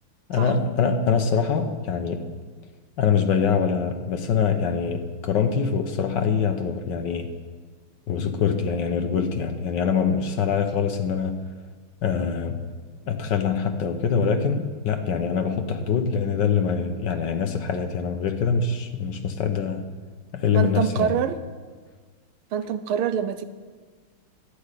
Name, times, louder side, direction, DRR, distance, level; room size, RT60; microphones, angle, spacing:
voice 1, 0.3-2.3 3.0-7.3 8.1-11.4 12.0-12.6 13.1-19.8 20.3-21.2, left 6 dB, 60° left, 7 dB, 1.4 m, -24 dB
voice 2, 20.5-21.4 22.5-23.4, right 8 dB, 80° right, 12 dB, 1.5 m, -25 dB
11.5 x 8.6 x 9.8 m, 1.5 s
omnidirectional pair, 2.4 m